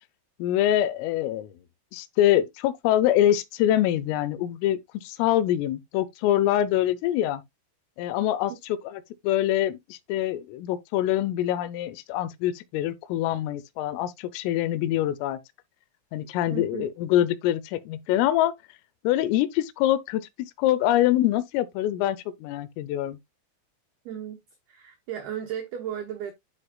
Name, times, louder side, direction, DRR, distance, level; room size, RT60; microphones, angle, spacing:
voice 1, 0.4-1.5 1.9-7.4 8.0-15.4 16.1-18.5 19.0-23.2, left 12 dB, 85° left, 3.2 m, -25 dB
voice 2, 16.5-16.9 24.1-24.4 24.7-26.3, right 9 dB, 85° right, 2.2 m, -35 dB
12.0 x 4.3 x 2.3 m
omnidirectional pair, 5.9 m